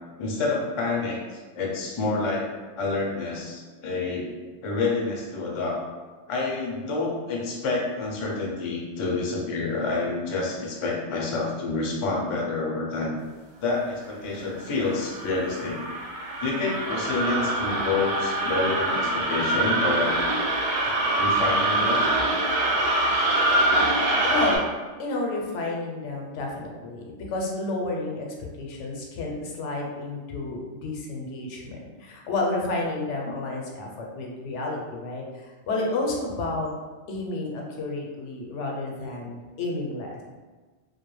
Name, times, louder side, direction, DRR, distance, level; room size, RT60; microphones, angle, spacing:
voice 1, 0.2-1.2 1.6-4.4 4.6-5.8 6.3-13.1 13.6-15.8 16.4-20.2 21.2-22.1, left 3 dB, 55° left, -2 dB, 0.3 m, -28 dB
sound 1, 14.5-24.6, right 2 dB, 50° right, 0.4 m, -24 dB
voice 2, 23.4-23.8 24.2-24.7 25.0-28.3 28.6-36.7 37.1-40.2, left 2 dB, 90° left, -1 dB, 0.9 m, -31 dB
2.4 x 2.2 x 3.0 m, 1.3 s
omnidirectional pair, 1.2 m